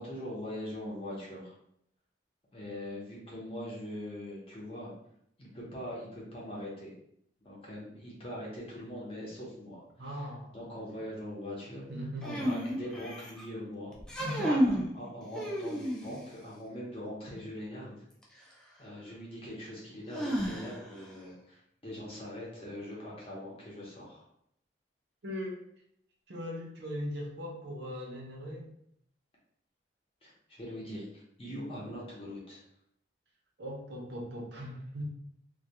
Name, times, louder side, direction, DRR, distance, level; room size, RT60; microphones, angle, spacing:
voice 1, 0.0-1.5 2.5-4.9 5.4-6.9 7.4-10.3 10.5-11.8 12.2-14.0 14.9-18.0 18.8-24.3 30.2-32.6, left 1 dB, 30° left, -5 dB, 0.7 m, -42 dB
voice 2, 10.0-10.8 11.9-12.4 14.2-14.8 25.2-25.6 26.3-28.7 33.6-35.0, equal, 65° right, -1 dB, 0.6 m, -39 dB
sound 1, 12.2-13.4 14.0-14.9 15.3-16.3 18.2-18.3 20.1-21.0, equal, 5° left, 0.3 m, -31 dB
2.2 x 2.2 x 2.8 m, 0.72 s
head